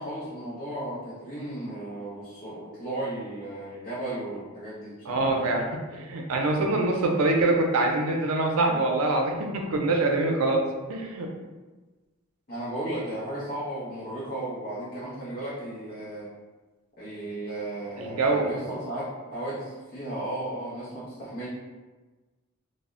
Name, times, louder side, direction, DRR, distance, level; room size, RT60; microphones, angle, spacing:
voice 1, 0.0-5.3 12.5-16.3 17.0-19.1 19.3-21.5, right 1 dB, 45° left, -10 dB, 0.6 m, -35 dB
voice 2, 5.1-11.3 18.0-18.5, right 2 dB, 80° right, 2 dB, 0.4 m, -25 dB
2.0 x 2.0 x 3.5 m, 1.2 s
head